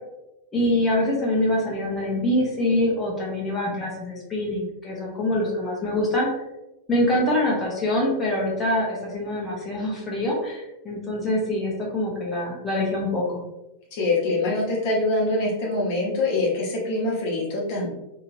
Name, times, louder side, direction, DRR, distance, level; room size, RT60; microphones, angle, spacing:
voice 1, 0.5-6.3 6.9-13.2, left 1 dB, 15° left, -4 dB, 0.9 m, -24 dB
voice 2, 13.9-17.9, left 2 dB, 50° left, -4 dB, 0.9 m, -24 dB
2.9 x 2.7 x 2.7 m, 0.95 s
figure-of-eight pair, 90°, 0 cm